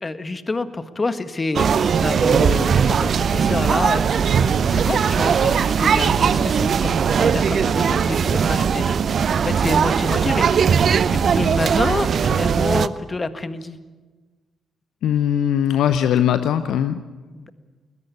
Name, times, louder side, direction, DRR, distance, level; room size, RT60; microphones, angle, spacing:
voice 1, 0.0-4.2 4.7-9.0 9.4-10.6 11.1-13.8 17.3-17.5, left 3 dB, 30° left, 11 dB, 1.7 m, -27 dB
sound 1, 1.5-12.9, right 7 dB, 50° right, 0.7 m, -19 dB
voice 2, 15.0-17.0, left 10 dB, 65° left, 12 dB, 0.7 m, -20 dB
20.5 x 20.5 x 8.4 m, 1.3 s
figure-of-eight pair, 40°, 0 cm